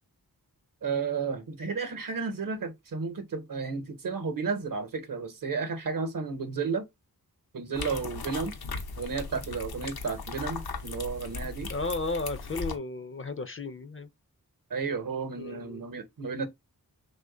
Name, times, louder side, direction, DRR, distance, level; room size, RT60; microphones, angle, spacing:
voice 1, 0.8-6.9 7.5-8.6 9.0-11.7 14.7-16.5, right 5 dB, 60° right, 0.8 m, -32 dB
sound 1, 7.7-12.8, left 4 dB, 85° left, 0.7 m, -38 dB
voice 2, 11.7-14.1 15.4-15.8, left 3 dB, 35° left, 0.4 m, -34 dB
3.1 x 2.2 x 3.7 m
wide cardioid pair, 70°, 36 cm